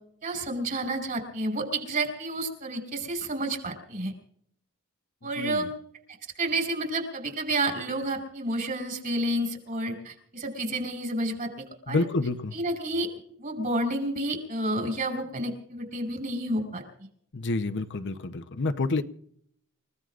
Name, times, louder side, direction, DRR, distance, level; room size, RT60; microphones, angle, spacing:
voice 1, 0.2-4.1 5.2-5.7 6.4-12.0 12.5-13.1 13.4-16.8, right 1 dB, 40° right, 4 dB, 5.6 m, -30 dB
voice 2, 5.2-5.7 11.9-12.5 17.3-19.0, left 3 dB, 55° left, 7 dB, 0.9 m, -28 dB
29.5 x 17.0 x 2.5 m, 0.66 s
head